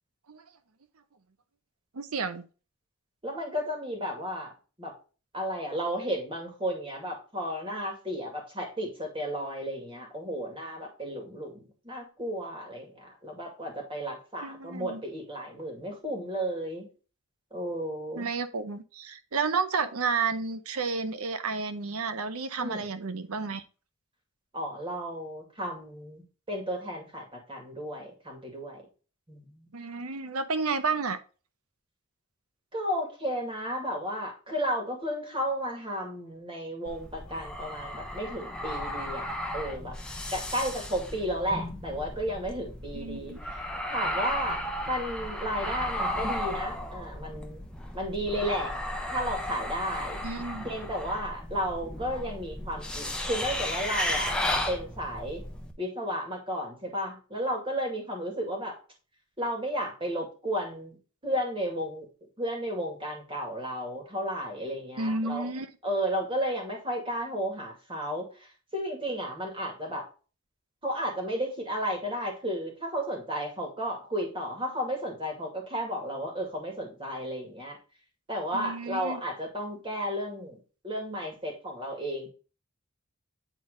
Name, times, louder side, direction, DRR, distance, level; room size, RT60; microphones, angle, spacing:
voice 1, 1.9-2.4 14.4-15.0 18.2-23.6 29.7-31.2 42.9-43.4 50.2-50.6 65.0-65.7 78.5-79.2, right 4 dB, 80° right, 10 dB, 0.8 m, -31 dB
voice 2, 3.2-4.5 4.8-4.9 5.3-16.9 17.5-18.3 22.6-22.9 24.5-28.9 29.3-29.7 32.7-40.0 40.3-43.6 43.9-47.7 47.9-48.7 49.1-50.2 50.6-54.4 54.7-55.4 55.8-58.8 59.4-61.0 61.2-62.1 62.4-65.5 65.8-70.1 70.8-77.8 78.3-80.6 80.8-82.3, equal, 25° right, 1 dB, 2.2 m, -33 dB
sound 1, 36.8-55.7, left 1 dB, 5° left, 0.8 m, -34 dB
8.4 x 4.0 x 3.6 m, 0.35 s
head